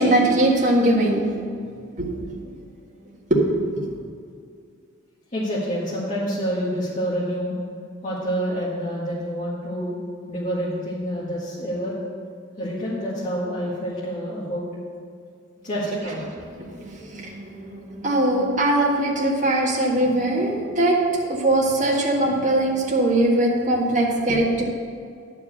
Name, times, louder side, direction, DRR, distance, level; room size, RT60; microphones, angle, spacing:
voice 1, 0.0-1.4 2.0-2.4 3.6-3.9 16.5-21.0 21.3-24.6, right 1 dB, 40° right, -3 dB, 1.8 m, -21 dB
voice 2, 5.3-7.5 8.0-10.0 10.3-11.9 12.6-14.7 15.6-16.2, equal, 40° left, -8 dB, 1.8 m, -27 dB
10.5 x 4.8 x 7.9 m, 2.2 s
head